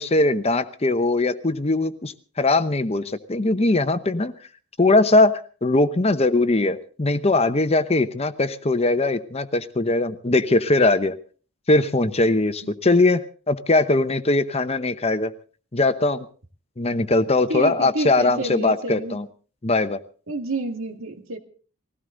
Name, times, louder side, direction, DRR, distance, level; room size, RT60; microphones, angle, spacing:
voice 1, 0.0-4.3 4.8-11.2 11.7-15.3 15.7-16.3 16.8-19.3 19.6-20.0, left 2 dB, 30° left, 10 dB, 0.9 m, -20 dB
voice 2, 17.5-19.2 20.3-21.4, right 2 dB, 70° right, 6 dB, 2.2 m, -29 dB
20.0 x 16.5 x 3.9 m, 0.40 s
head